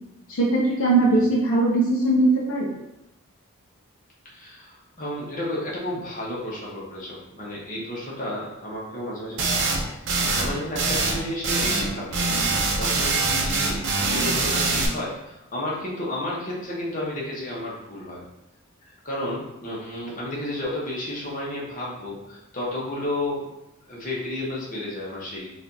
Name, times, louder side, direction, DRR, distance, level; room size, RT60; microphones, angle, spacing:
voice 1, 0.3-2.7, right 2 dB, 65° left, -4 dB, 0.6 m, -20 dB
voice 2, 4.2-18.2 19.0-23.5 23.9-25.5, left 1 dB, 35° left, -5 dB, 1.0 m, -32 dB
sound 1, 9.4-9.8 10.1-10.5 10.7-11.2 11.4-11.9 12.1-14.9, right 3 dB, 55° right, 0.6 m, -23 dB
4.8 x 2.5 x 2.7 m, 0.91 s
head